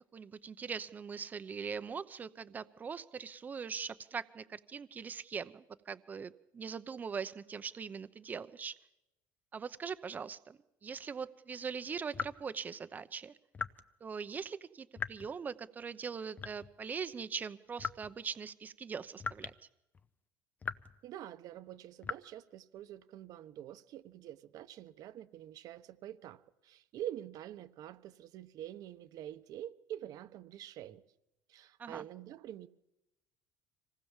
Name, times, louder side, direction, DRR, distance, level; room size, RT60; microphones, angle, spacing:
voice 1, 0.1-8.7 9.5-13.3 14.0-19.5 31.8-32.0, right 6 dB, 20° right, 0.8 m, -41 dB
sound 1, 12.1-12.5 13.5-13.8 15.0-15.4 16.4-16.8 17.8-18.2 19.2-19.6 19.9-20.1 20.6-21.0 22.0-22.1, left 5 dB, 20° left, 0.8 m, -39 dB
voice 2, 21.0-31.0 31.5-32.7, right 11 dB, 50° right, 1.1 m, -46 dB
26.0 x 19.0 x 7.4 m
cardioid pair, 165°, 8 cm